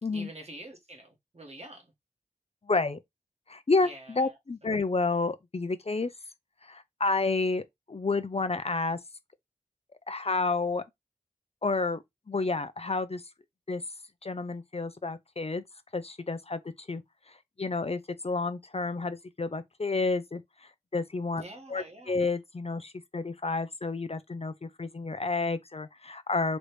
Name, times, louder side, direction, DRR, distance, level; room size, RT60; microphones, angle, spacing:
voice 1, 0.1-1.9 3.8-4.7 21.3-22.2, right 1 dB, 45° right, 1.8 m, -47 dB
voice 2, 2.7-3.0 3.5-6.1 6.6-9.0 10.1-10.8 11.6-12.0 12.3-13.2 13.7-13.8 14.2-15.6 15.9-16.6 16.9-17.0 17.3-20.4 20.9-21.4 21.7-26.6, left 3 dB, 40° left, 0.5 m, -30 dB
4.0 x 3.2 x 3.3 m
wide cardioid pair, 45°, 15 cm